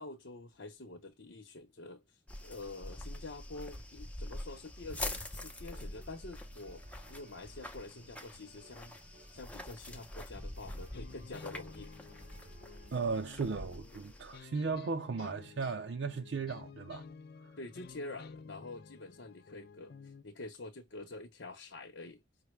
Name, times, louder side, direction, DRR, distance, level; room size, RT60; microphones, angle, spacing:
voice 1, 0.0-9.0 9.3-11.9 17.6-22.2, left 2 dB, 80° left, 1.0 m, -47 dB
sound 1, 2.3-14.4, left 1 dB, 5° left, 0.7 m, -45 dB
sound 2, 5.3-12.9, right 2 dB, 45° right, 0.7 m, -61 dB
sound 3, 10.9-20.2, left 5 dB, 55° left, 0.4 m, -53 dB
voice 2, 12.9-17.0 17.4-17.6, right 4 dB, 75° right, 0.5 m, -36 dB
5.7 x 2.1 x 3.3 m
head